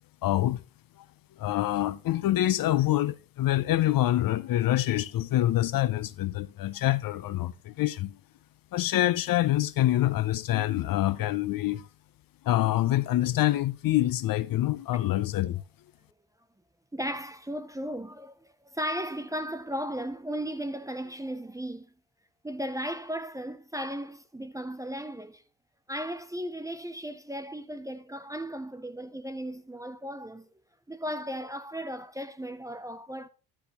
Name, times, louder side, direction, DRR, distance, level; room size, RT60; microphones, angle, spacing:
voice 1, 0.2-0.6 1.4-8.2 8.7-11.9 12.4-15.6, left 14 dB, 55° left, 0.6 m, -26 dB
voice 2, 16.9-21.9 22.4-25.4 25.9-30.5 30.9-33.3, equal, 10° right, 0.5 m, -36 dB
10.5 x 6.8 x 2.9 m
supercardioid pair, 85°, 42 cm